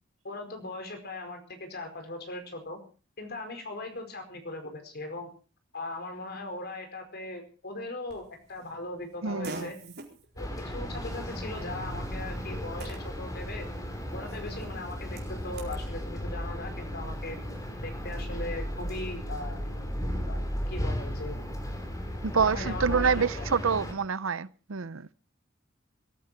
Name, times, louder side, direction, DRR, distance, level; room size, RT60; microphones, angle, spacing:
voice 1, 0.2-2.8 3.2-5.3 5.7-9.7 10.3-13.7 14.1-17.4 17.8-19.6 20.3-21.5 22.3-23.5, left 2 dB, 55° left, 4.8 m, -39 dB
Fart, 8.1-15.8, right 2 dB, 55° right, 4.4 m, -48 dB
voice 2, 9.2-9.7 22.2-25.1, right 5 dB, 75° right, 0.7 m, -27 dB
sound 1, 10.4-23.9, equal, 15° left, 3.8 m, -35 dB
22.0 x 14.5 x 4.4 m
head